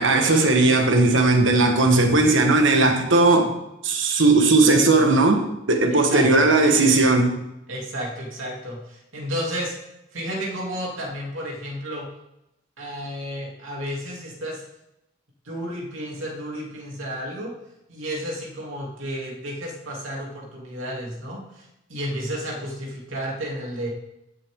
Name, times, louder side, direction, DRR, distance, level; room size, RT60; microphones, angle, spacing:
voice 1, 0.0-3.5 3.8-7.4, right 2 dB, 70° right, 1.5 m, -17 dB
voice 2, 5.9-6.5 7.7-9.8 10.1-12.1 12.8-14.6 15.4-17.5 17.9-23.9, equal, 90° right, 2.9 m, -32 dB
15.5 x 7.7 x 3.7 m
head